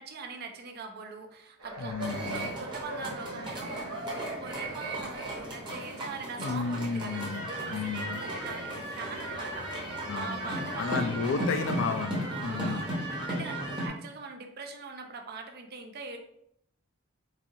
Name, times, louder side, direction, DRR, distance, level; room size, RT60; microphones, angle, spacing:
voice 1, 0.0-3.9 4.4-7.2 7.7-9.7 10.1-11.1 12.3-12.8 13.3-16.2, right 4 dB, 45° right, 4 dB, 0.5 m, -42 dB
sound 1, 1.6-9.9, right 1 dB, 85° right, 0.9 m, -43 dB
voice 2, 1.8-2.5 6.4-8.2 10.1-12.9, left 5 dB, 60° left, 9 dB, 0.3 m, -33 dB
sound 2, 2.0-13.9, right 1 dB, 20° right, 0.8 m, -36 dB
4.1 x 2.4 x 2.7 m, 0.72 s
head